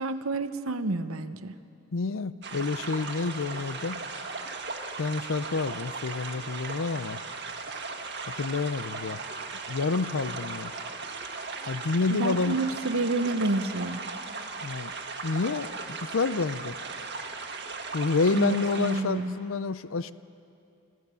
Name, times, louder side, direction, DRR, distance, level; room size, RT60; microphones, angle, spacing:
voice 1, 0.0-1.5 12.2-14.0 18.3-19.3, right 2 dB, 75° right, 11 dB, 0.9 m, -29 dB
voice 2, 1.9-4.0 5.0-7.2 8.4-9.2 9.7-10.7 11.7-12.6 14.6-14.9 15.2-15.7 16.1-16.7 17.9-20.1, left 4 dB, 65° left, 15 dB, 0.6 m, -28 dB
sound 1, 2.4-19.0, right 4 dB, 50° right, 1.6 m, -37 dB
26.0 x 16.0 x 6.9 m, 2.6 s
head